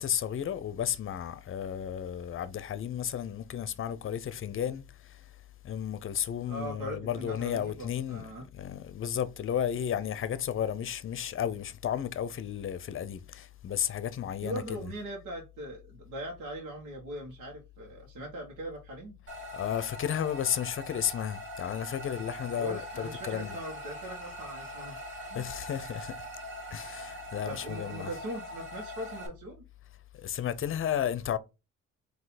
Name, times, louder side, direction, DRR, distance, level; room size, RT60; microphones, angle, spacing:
voice 1, 0.0-5.2 5.6-8.3 8.5-14.8 19.5-23.6 25.3-26.3 26.7-28.1 30.2-31.4, left 9 dB, 45° left, 0.6 m, -33 dB
voice 2, 6.5-8.4 14.4-19.1 22.6-25.0 25.3-25.5 27.4-29.6, right 1 dB, 80° right, 1.4 m, -40 dB
sound 1, 19.3-29.3, equal, 50° right, 2.3 m, -42 dB
3.8 x 2.8 x 4.2 m
cardioid pair, 90°, 30 cm